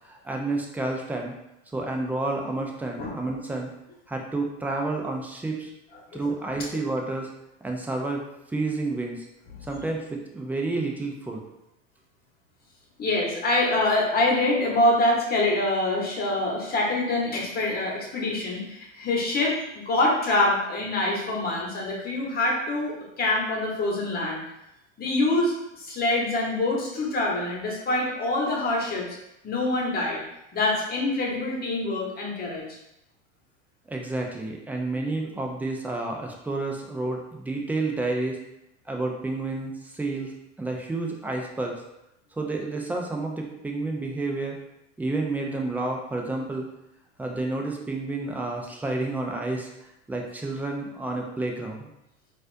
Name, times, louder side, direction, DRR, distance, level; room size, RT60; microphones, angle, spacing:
voice 1, 0.0-1.3 1.7-3.7 4.1-5.7 6.1-7.3 7.6-8.2 8.5-9.3 9.7-11.4 33.9-38.4 38.9-40.3 40.6-41.8 42.3-44.6 45.0-46.7 47.2-49.7 50.1-51.9, right 2 dB, 5° right, 1 dB, 0.4 m, -30 dB
voice 2, 13.0-24.4 25.0-29.1 29.4-30.2 30.5-32.6, left 2 dB, 25° left, -2 dB, 1.1 m, -25 dB
4.1 x 2.5 x 2.5 m, 0.85 s
hypercardioid pair, 100°, 36 cm